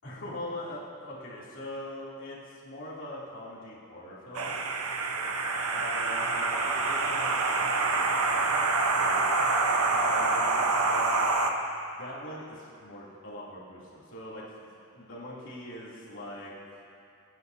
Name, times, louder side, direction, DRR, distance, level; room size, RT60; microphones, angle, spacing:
voice 1, 0.0-4.6 5.7-8.6 8.9-9.5 9.9-11.0 11.9-14.7 14.9-16.5, left 1 dB, 60° left, -7 dB, 2.9 m, -42 dB
sound 1, 4.3-11.5, right 3 dB, 85° right, 1.0 m, -26 dB
23.0 x 10.0 x 2.7 m, 2.4 s
head